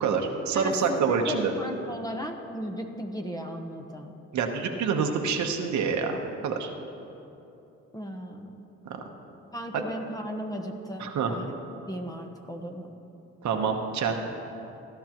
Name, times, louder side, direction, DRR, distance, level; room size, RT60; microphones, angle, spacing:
voice 1, 0.0-1.5 4.3-6.7 11.0-11.4 13.4-14.1, right 5 dB, 70° right, 3 dB, 1.1 m, -27 dB
voice 2, 0.5-4.1 7.9-8.7 9.5-11.5 11.9-12.9, equal, 10° left, 4 dB, 1.0 m, -36 dB
16.5 x 11.5 x 3.0 m, 2.8 s
cardioid pair, 90°, 30 cm